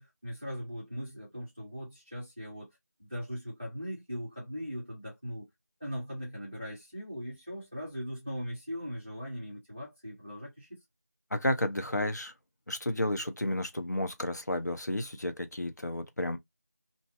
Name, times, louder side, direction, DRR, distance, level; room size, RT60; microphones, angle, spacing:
voice 1, 0.0-2.7 3.0-5.5 5.8-10.8, equal, 5° right, 0.8 m, -39 dB
voice 2, 11.3-12.3 12.7-16.4, left 1 dB, 85° left, 0.8 m, -32 dB
2.7 x 2.1 x 3.5 m
figure-of-eight pair, 175°, 9 cm